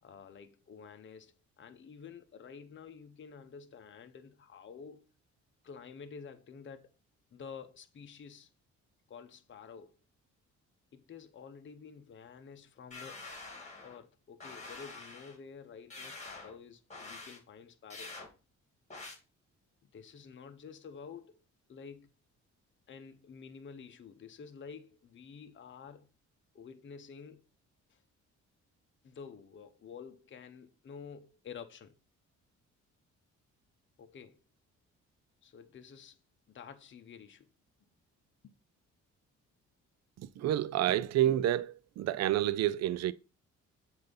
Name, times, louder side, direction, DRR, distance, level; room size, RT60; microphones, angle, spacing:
voice 1, 0.0-5.1 5.6-6.9 7.3-8.5 9.1-9.9 10.9-13.3 13.8-18.2 19.9-21.4 21.7-22.1 22.9-26.1 26.5-27.5 27.9-28.0 29.0-32.0 34.0-34.4 35.4-36.2 36.5-37.5 38.4-38.6, left 6 dB, 40° left, 0.8 m, -50 dB
sound 1, 12.9-14.0 14.4-15.4 15.9-16.6 16.9-17.4 17.9-18.3 18.9-19.2, left 3 dB, 20° left, 2.0 m, -46 dB
voice 2, 40.2-43.1, right 12 dB, 60° right, 0.4 m, -29 dB
7.7 x 2.7 x 5.3 m
cardioid pair, 90°, 30 cm